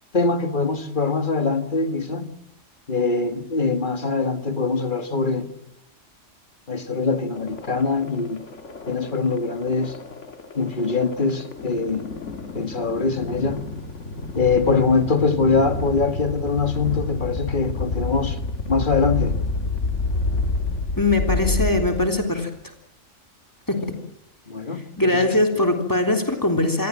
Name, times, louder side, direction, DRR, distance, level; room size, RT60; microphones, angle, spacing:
voice 1, 0.1-2.3 2.9-5.5 6.7-8.4 8.9-9.9 10.6-12.1 12.5-13.7 14.4-18.4 18.7-19.4 24.5-25.2, left 4 dB, 40° left, 2.0 m, -23 dB
sound 1, 7.3-22.4, left 3 dB, 65° left, 2.2 m, -29 dB
voice 2, 21.0-22.5 23.7-23.9 25.0-26.9, left 2 dB, 15° left, 3.5 m, -21 dB
28.0 x 22.0 x 7.6 m
omnidirectional pair, 1.4 m